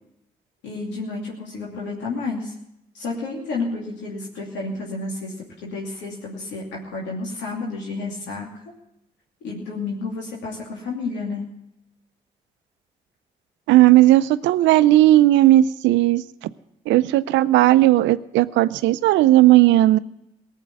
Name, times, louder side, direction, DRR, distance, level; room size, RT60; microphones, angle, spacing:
voice 1, 0.6-2.5 2.9-5.3 5.6-8.5 9.4-11.5, left 3 dB, 85° left, -3 dB, 2.7 m, -30 dB
voice 2, 13.7-16.2 16.9-20.0, right 15 dB, 85° right, 15 dB, 0.5 m, -15 dB
18.0 x 7.5 x 9.3 m, 0.80 s
hypercardioid pair, 40°, 18 cm